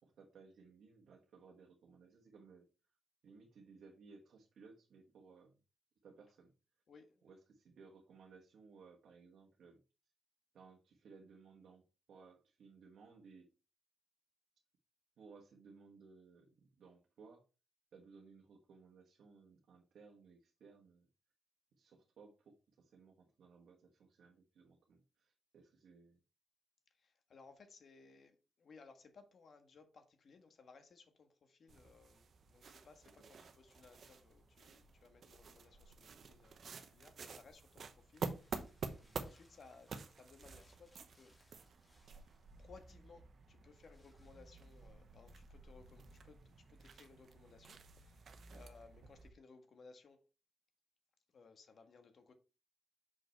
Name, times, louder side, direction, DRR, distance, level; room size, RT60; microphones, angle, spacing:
voice 1, 0.0-2.7 3.2-5.6 6.0-6.5 7.2-9.8 10.5-11.8 12.1-13.5 15.2-17.4 17.9-21.1 21.8-26.2 33.0-33.3 39.0-39.3 48.5-48.6, right 4 dB, 70° right, 1.4 m, -61 dB
voice 2, 6.9-7.3 26.9-41.4 42.6-50.2 51.3-52.3, left 4 dB, 45° left, 1.4 m, -62 dB
sound 1, 31.7-49.3, right 5 dB, 45° right, 0.8 m, -50 dB
sound 2, 33.7-47.3, left 2 dB, 10° left, 2.1 m, -74 dB
6.3 x 5.2 x 4.5 m
wide cardioid pair, 170°, 0 cm